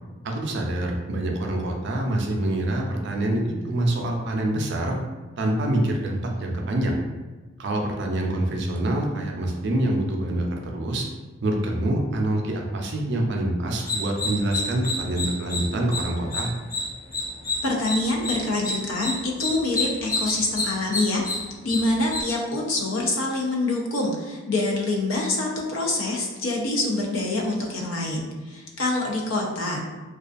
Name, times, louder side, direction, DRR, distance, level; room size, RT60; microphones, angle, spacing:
voice 1, 0.2-5.0 5.4-7.0 7.6-11.1 11.4-16.5, right 1 dB, 60° right, 1 dB, 0.4 m, -26 dB
sound 1, 13.7-22.2, left 2 dB, 15° left, 0.3 m, -29 dB
voice 2, 17.6-21.2 21.6-29.8, left 2 dB, 85° left, -1 dB, 0.5 m, -26 dB
2.4 x 2.3 x 2.4 m, 1.3 s
head